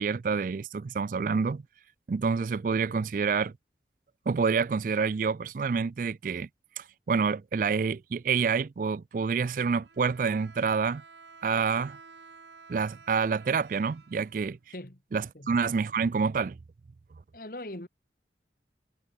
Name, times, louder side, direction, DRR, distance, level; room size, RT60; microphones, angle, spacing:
voice 1, 0.0-1.6 2.1-3.5 4.3-6.5 6.8-11.0 11.4-12.0 12.7-14.6 15.1-16.6, right 5 dB, 50° right, 0.4 m, -28 dB
Bowed string instrument, 9.8-14.9, right 4 dB, 90° right, 2.9 m, -52 dB
voice 2, 17.3-17.9, left 1 dB, 50° left, 2.8 m, -40 dB
head